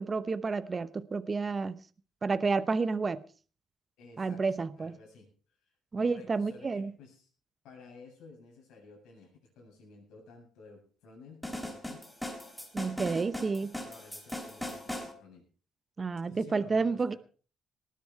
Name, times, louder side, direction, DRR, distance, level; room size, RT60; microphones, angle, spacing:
voice 1, 0.0-1.9 2.2-3.2 4.2-5.0 5.9-6.9 12.7-13.7 16.0-17.1, right 4 dB, 25° right, 0.7 m, -30 dB
voice 2, 4.0-4.5 4.8-5.3 6.0-7.3 7.6-12.0 13.6-15.4 16.3-17.2, left 4 dB, 85° left, 7.8 m, -53 dB
sound 1, 11.4-15.1, left 1 dB, 5° left, 4.5 m, -39 dB
19.5 x 10.5 x 4.7 m
cardioid pair, 130°, 0 cm